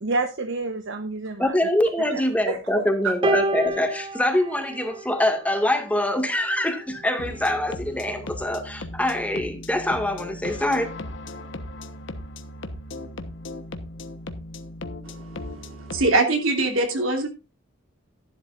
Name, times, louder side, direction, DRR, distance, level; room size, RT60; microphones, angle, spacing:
voice 1, 0.0-1.7 2.0-3.2, right 3 dB, 60° right, 1.0 m, -30 dB
voice 2, 1.4-10.9, left 1 dB, 5° left, 1.9 m, -24 dB
sound 1, 3.2-5.7 6.7-6.9, right 1 dB, 25° right, 0.4 m, -28 dB
sound 2, 7.2-16.1, left 1 dB, 65° left, 1.1 m, -37 dB
voice 3, 15.0-17.3, right 2 dB, 80° right, 3.0 m, -24 dB
13.0 x 11.5 x 2.5 m
head